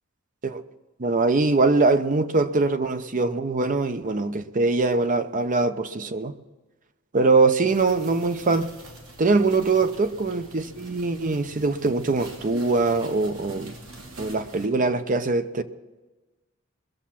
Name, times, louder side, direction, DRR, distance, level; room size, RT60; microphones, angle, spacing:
voice 1, 1.0-6.3 7.1-8.7 9.2-13.8 14.2-15.6, right 3 dB, 40° right, 0.7 m, -22 dB
sound 1, 7.7-14.7, right 2 dB, 75° right, 2.7 m, -45 dB
20.5 x 7.3 x 5.8 m
head